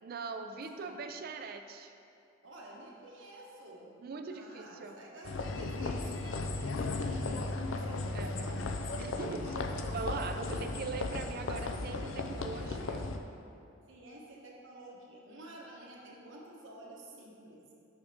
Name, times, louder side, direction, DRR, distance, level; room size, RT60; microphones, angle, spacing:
voice 1, 0.0-1.9 4.0-5.0 8.1-8.6 9.0-9.6 9.9-13.1, right 4 dB, 50° right, 7 dB, 0.4 m, -41 dB
voice 2, 0.5-1.0 2.4-4.0 4.3-8.8 9.2-9.6 10.5-10.8 13.9-17.7, right 1 dB, 70° right, -3 dB, 1.1 m, -51 dB
sound 1, 5.2-13.2, left 3 dB, 75° left, 0.5 m, -36 dB
6.4 x 6.2 x 3.5 m, 2.5 s
head